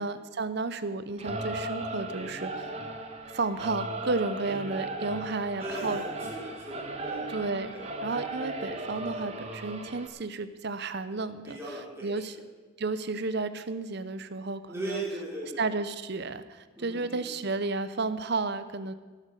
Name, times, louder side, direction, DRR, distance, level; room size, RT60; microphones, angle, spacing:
voice 1, 0.0-2.7 3.3-6.0 7.3-7.7 8.0-12.4 12.8-15.0 15.6-18.9, right 3 dB, 50° right, 12 dB, 0.7 m, -32 dB
Singing / Musical instrument, 1.2-10.1, right 2 dB, 30° right, 1.3 m, -36 dB
voice 2, 5.6-7.2 7.7-7.9 11.5-12.4 14.7-15.7 16.8-17.2, right 1 dB, 10° right, -5 dB, 3.9 m, -38 dB
17.5 x 8.3 x 6.5 m, 1.4 s
head